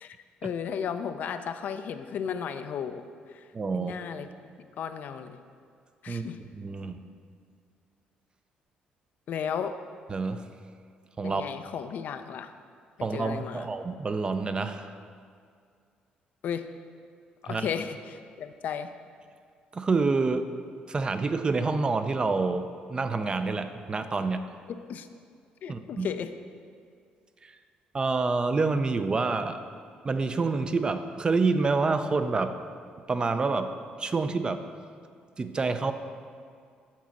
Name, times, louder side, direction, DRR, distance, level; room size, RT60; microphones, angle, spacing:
voice 1, 0.4-3.5 3.7-4.3 4.6-5.4 6.0-6.4 9.3-9.8 11.2-12.5 13.0-13.7 16.4-16.7 17.4-18.9 24.7-25.1 25.6-26.3, left 7 dB, 65° left, 9 dB, 0.4 m, -34 dB
voice 2, 3.5-3.9 6.1-6.3 6.5-7.0 10.1-10.5 11.2-11.4 13.0-14.9 17.5-17.7 19.7-20.5 20.9-24.4 25.7-26.1 27.4-27.5 27.9-29.6 30.0-32.5 33.1-34.6 35.4-35.9, right 4 dB, 30° right, 9 dB, 0.4 m, -27 dB
7.3 x 4.0 x 5.8 m, 2.2 s
cardioid pair, 90°, 3 cm